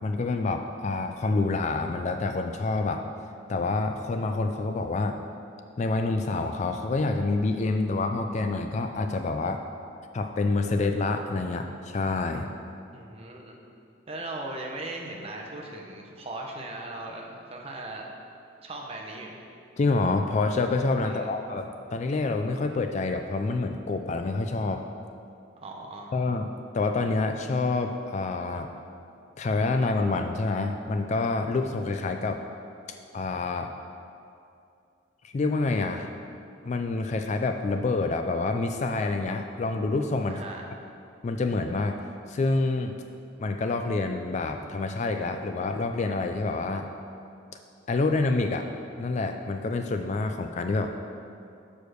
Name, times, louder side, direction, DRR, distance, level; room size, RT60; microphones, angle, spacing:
voice 1, 0.0-3.0 3.5-5.2 5.8-9.6 10.1-12.5 19.8-24.8 26.1-26.5 26.7-28.7 29.4-32.4 33.1-33.7 35.2-36.1 36.7-40.4 41.2-43.0 43.4-46.9 47.9-48.7 49.0-50.9, left 3 dB, 35° left, 5 dB, 0.3 m, -27 dB
voice 2, 12.9-13.6 14.1-18.1 18.6-19.4 21.0-21.3 25.6-26.2 40.3-40.6, right 2 dB, 30° right, 0 dB, 0.8 m, -38 dB
6.8 x 5.0 x 6.3 m, 2.5 s
head